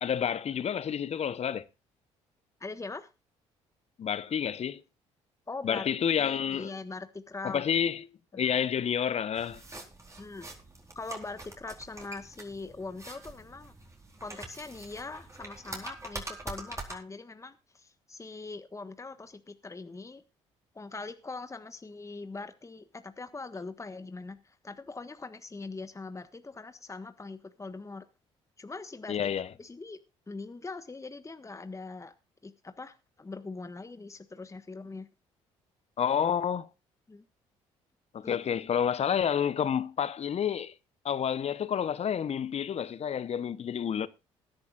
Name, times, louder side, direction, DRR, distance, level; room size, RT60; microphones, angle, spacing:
voice 1, 0.0-1.7 4.0-4.8 5.6-6.7 7.4-8.0 8.3-9.6 29.1-29.5 36.0-36.7 38.1-40.7 41.0-44.1, left 8 dB, 45° left, 0.9 m, -29 dB
voice 2, 2.6-3.1 5.5-5.9 6.2-7.6 8.3-8.5 10.2-10.5 10.9-13.7 14.2-20.2 20.7-28.0 28.6-30.0 30.3-32.1 32.4-35.1 37.1-37.3 38.2-38.4, left 3 dB, 20° left, 1.4 m, -42 dB
sound 1, 9.4-17.0, right 2 dB, 20° right, 4.3 m, -44 dB
20.5 x 10.5 x 2.5 m
hypercardioid pair, 55°, 15 cm